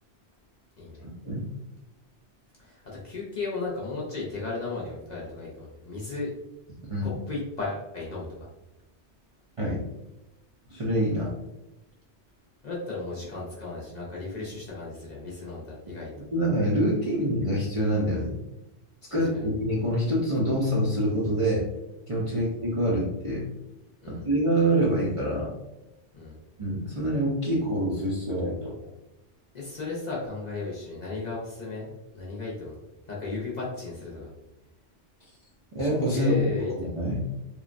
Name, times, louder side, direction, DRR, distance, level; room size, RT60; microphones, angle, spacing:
voice 1, 1.0-1.5 6.9-7.1 9.6-9.8 10.7-11.3 16.3-18.4 19.1-21.7 22.1-23.5 24.1-25.5 26.6-28.7 35.7-37.2, equal, 45° right, -6 dB, 0.4 m, -26 dB
voice 2, 2.6-6.3 7.0-8.5 12.6-16.1 19.1-19.4 22.3-22.4 24.0-24.3 26.1-26.4 29.5-32.8 33.1-34.3 36.1-36.9, left 3 dB, 50° left, -5 dB, 0.6 m, -35 dB
3.1 x 2.1 x 2.4 m, 0.94 s
omnidirectional pair, 1.2 m